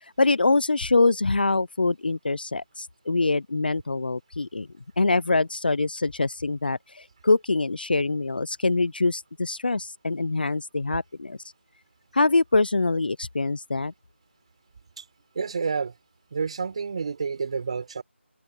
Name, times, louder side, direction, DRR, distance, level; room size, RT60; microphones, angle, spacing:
voice 1, 0.2-4.7 5.0-11.4 12.1-13.9, left 3 dB, 50° left, 0.6 m, -24 dB
voice 2, 15.4-16.0 16.3-18.0, right 5 dB, 30° right, 6.9 m, -29 dB
open air
figure-of-eight pair, 170°, 7 cm